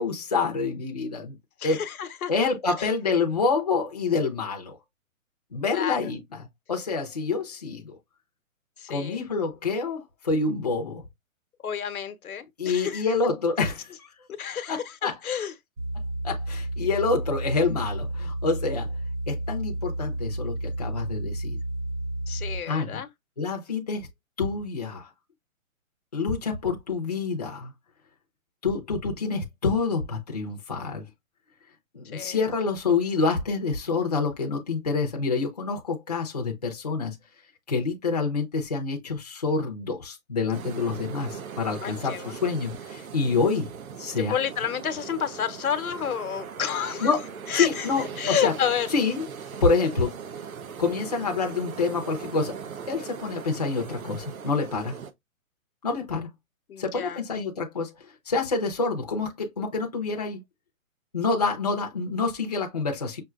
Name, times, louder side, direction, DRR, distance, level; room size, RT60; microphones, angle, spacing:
voice 1, 0.0-1.4 1.6-1.8 2.3-4.8 5.5-8.0 8.9-11.0 12.6-13.9 14.7-15.1 16.2-18.9 19.3-21.6 22.7-23.0 23.4-24.1 24.4-25.1 26.1-27.7 28.6-31.0 31.9-37.2 37.7-43.7 44.0-44.3 47.0-47.3 47.5-48.5 48.9-49.3 49.6-50.1 50.8-52.6 52.9-55.0 55.8-56.3 56.8-57.9 58.3-60.4 61.1-63.2, left 4 dB, 30° left, 0.6 m, -27 dB
voice 2, 1.6-2.3 2.8-2.9 5.7-6.0 8.8-9.2 11.6-13.0 14.4-15.5 22.3-23.1 32.1-32.4 41.8-42.3 44.3-47.1 47.5-47.9 48.2-48.9 56.7-57.2, left 8 dB, 90° left, 1.0 m, -30 dB
sound 1, 15.8-22.6, right 1 dB, 60° right, 1.7 m, -31 dB
sound 2, 40.5-55.1, right 7 dB, 75° right, 0.8 m, -39 dB
5.6 x 2.7 x 2.3 m
hypercardioid pair, 180°, 42 cm